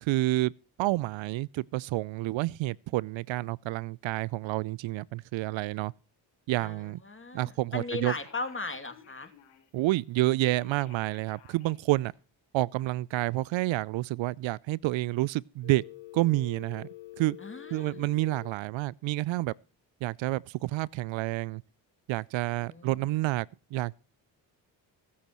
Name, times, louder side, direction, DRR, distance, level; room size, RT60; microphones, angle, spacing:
voice 1, 0.0-0.5 0.8-5.9 6.5-7.0 7.3-8.1 9.7-12.1 12.5-15.8 16.1-16.9 17.2-17.4 17.7-19.5 20.0-21.6 22.1-23.9, right 18 dB, 65° right, 0.5 m, -29 dB
voice 2, 6.6-9.3 17.4-18.0 22.5-23.0, left 3 dB, 25° left, 2.5 m, -38 dB
Telephone, 8.1-9.8 10.4-12.1 15.6-18.5, left 14 dB, 85° left, 4.6 m, -49 dB
24.5 x 8.5 x 3.0 m
supercardioid pair, 50°, 49 cm